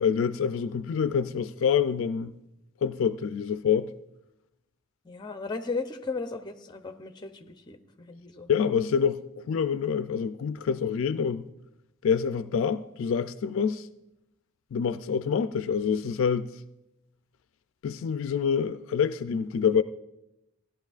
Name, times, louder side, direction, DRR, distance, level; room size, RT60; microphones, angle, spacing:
voice 1, 0.0-2.3 2.8-3.9 8.5-11.4 12.0-13.9 14.7-16.5 17.8-19.8, left 7 dB, 65° left, 0.3 m, -26 dB
voice 2, 5.1-8.5, left 4 dB, 20° left, 0.6 m, -36 dB
16.0 x 11.0 x 2.4 m
head